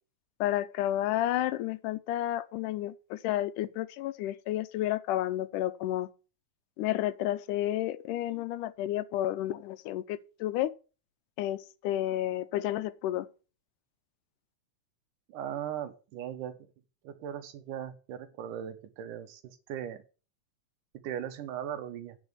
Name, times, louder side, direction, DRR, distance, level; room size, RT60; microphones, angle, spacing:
voice 1, 0.4-6.1 6.8-10.7 11.4-13.3, left 13 dB, 90° left, 2.3 m, -31 dB
voice 2, 15.3-16.6 17.0-20.0 21.0-22.2, right 10 dB, 85° right, 2.7 m, -38 dB
8.7 x 5.5 x 8.0 m
omnidirectional pair, 3.6 m